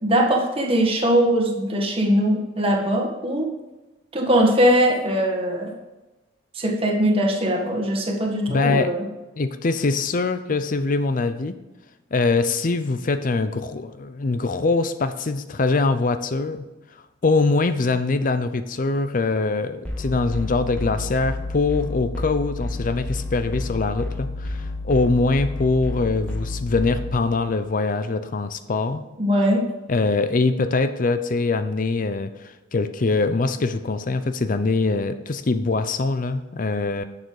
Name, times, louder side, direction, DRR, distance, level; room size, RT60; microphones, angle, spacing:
voice 1, 0.0-3.5 4.1-5.7 6.5-9.0 29.2-29.6, equal, 30° right, 1 dB, 1.6 m, -21 dB
voice 2, 8.5-8.9 9.4-11.6 12.1-16.7 16.9-29.0 29.9-37.0, left 3 dB, 45° left, 11 dB, 0.5 m, -23 dB
sound 1, 19.8-27.2, left 2 dB, 10° left, 2.0 m, -30 dB
10.5 x 6.7 x 4.7 m, 1.1 s
head